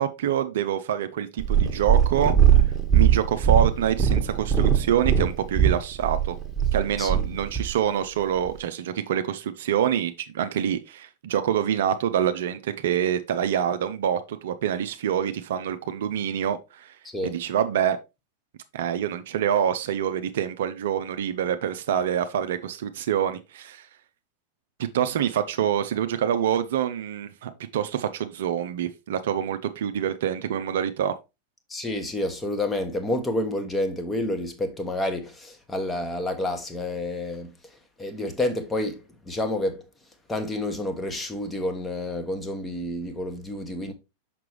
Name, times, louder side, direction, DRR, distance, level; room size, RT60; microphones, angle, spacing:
voice 1, 0.0-2.6 2.9-6.4 6.7-16.9 17.2-18.0 18.7-23.9 24.9-31.1, right 9 dB, 60° right, 0.5 m, -26 dB
Purr, 1.4-7.7 8.5-8.6, right 8 dB, 10° right, 1.4 m, -20 dB
voice 2, 31.7-37.5 38.0-39.8 40.3-43.9, left 1 dB, 10° left, 1.2 m, -29 dB
6.0 x 5.9 x 3.0 m
figure-of-eight pair, 90°, 0 cm